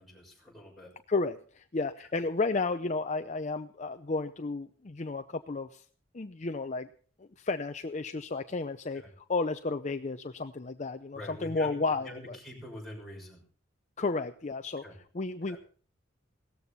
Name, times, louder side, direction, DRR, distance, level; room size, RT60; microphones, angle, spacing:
voice 1, 0.3-0.9 8.9-9.1 11.1-11.7 12.0-13.4 14.8-14.9 15.5-15.6, left 1 dB, ahead, -3 dB, 6.3 m, -44 dB
voice 2, 1.1-5.8 6.1-6.9 7.2-12.4 14.0-14.8 15.1-15.6, left 3 dB, 35° left, 8 dB, 0.6 m, -32 dB
17.5 x 14.0 x 4.2 m, 0.43 s
head